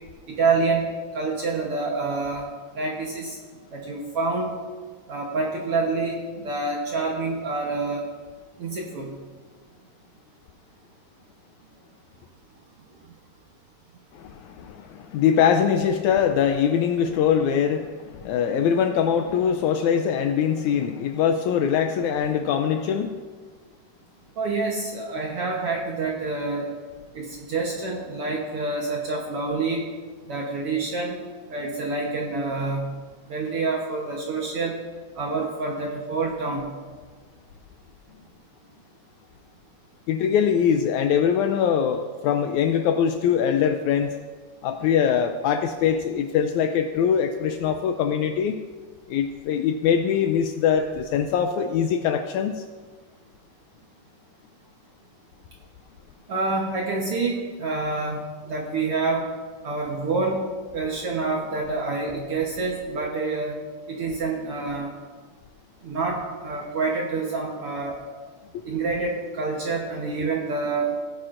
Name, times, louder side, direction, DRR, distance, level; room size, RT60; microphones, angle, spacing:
voice 1, 0.4-0.9 1.1-2.5 2.7-3.4 3.7-4.5 5.1-8.0 8.6-9.1 24.4-26.7 27.1-29.9 30.3-31.1 31.5-32.9 33.3-34.8 35.1-36.7 56.3-59.2 59.6-60.4 60.7-63.6 63.9-64.9 65.8-68.0 68.6-70.9, right 3 dB, 60° right, -1 dB, 1.6 m, -27 dB
voice 2, 14.1-23.1 40.1-44.1 44.6-48.6 49.1-52.6 68.5-68.6, left 8 dB, 80° left, 7 dB, 1.8 m, -22 dB
17.0 x 9.9 x 2.5 m, 1.5 s
omnidirectional pair, 3.7 m